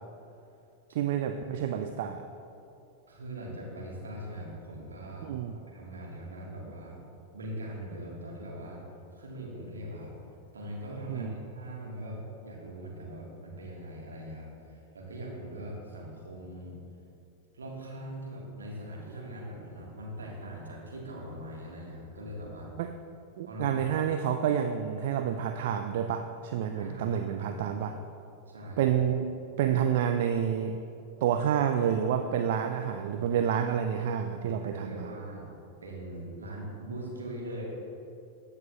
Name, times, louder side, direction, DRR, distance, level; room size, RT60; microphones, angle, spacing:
voice 1, 0.9-2.3 5.2-5.6 11.1-11.4 22.8-22.9 23.4-28.0 28.8-29.3 29.6-30.8 31.2-35.1, right 8 dB, 55° right, 6 dB, 0.3 m, -29 dB
voice 2, 3.1-7.0 7.3-8.8 9.1-10.1 10.5-16.8 17.5-22.7 23.5-23.8 26.7-27.6 28.5-28.9 34.6-35.5 35.8-37.6, right 1 dB, 70° right, -3 dB, 1.6 m, -41 dB
15.0 x 5.5 x 2.4 m, 2.7 s
figure-of-eight pair, 90°, 0 cm